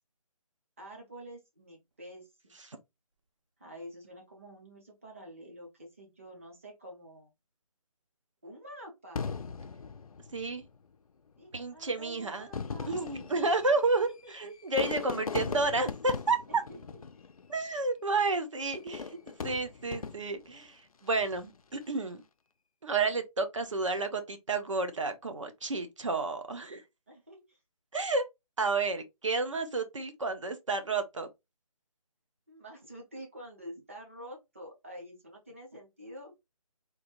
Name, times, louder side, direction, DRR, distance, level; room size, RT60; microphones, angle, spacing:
voice 1, 0.8-2.5 3.6-7.3 8.4-9.3 11.4-13.3 14.2-14.3 15.0-15.1 16.5-17.0 27.1-27.6 32.5-36.3, equal, 20° right, 0.8 m, -48 dB
Fireworks, 9.2-10.8 11.6-11.7 12.4-17.7 18.7-20.5 21.1-21.6, left 5 dB, 70° left, 0.5 m, -39 dB
voice 2, 10.3-10.6 11.5-12.5 12.9-16.6 17.5-22.2 22.8-26.8 27.9-28.2 28.6-31.3, right 3 dB, 55° right, 0.8 m, -31 dB
3.9 x 2.7 x 3.0 m
hypercardioid pair, 180°, 19 cm